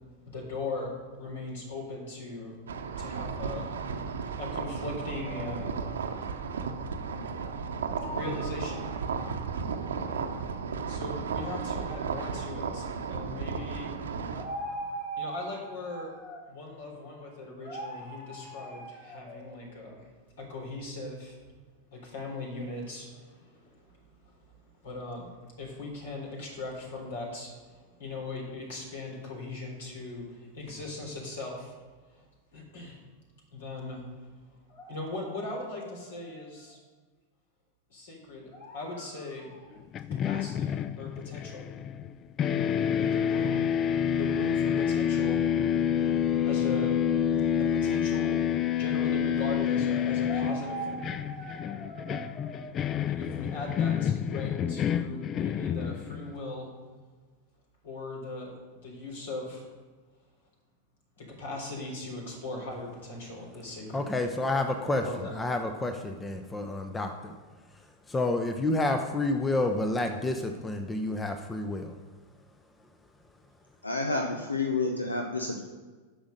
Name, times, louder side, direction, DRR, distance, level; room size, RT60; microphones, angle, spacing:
voice 1, 0.3-0.9 1.2-2.6 3.0-5.9 7.3-9.0 10.9-20.1 20.4-21.4 21.9-24.4 24.8-31.7 32.1-32.2 32.5-33.0 33.5-34.0 34.7-36.8 37.9-39.7 40.1-41.7 43.0-43.8 44.1-45.5 46.5-47.1 47.5-52.7 53.0-56.7 57.8-59.7 61.2-64.0 64.9-65.3, left 2 dB, 60° left, -1 dB, 3.7 m, -39 dB
sound 1, 2.7-14.5, right 5 dB, 65° right, 0.9 m, -34 dB
sound 2, 39.9-42.1 42.4-56.4, left 8 dB, 30° left, 0.4 m, -28 dB
voice 2, 63.9-65.0 65.3-67.3 68.1-71.9, left 2 dB, 10° left, 5 dB, 0.8 m, -29 dB
voice 3, 73.8-75.6, left 3 dB, 80° left, 3 dB, 0.9 m, -30 dB
10.0 x 6.2 x 6.7 m, 1.4 s
figure-of-eight pair, 90°, 0 cm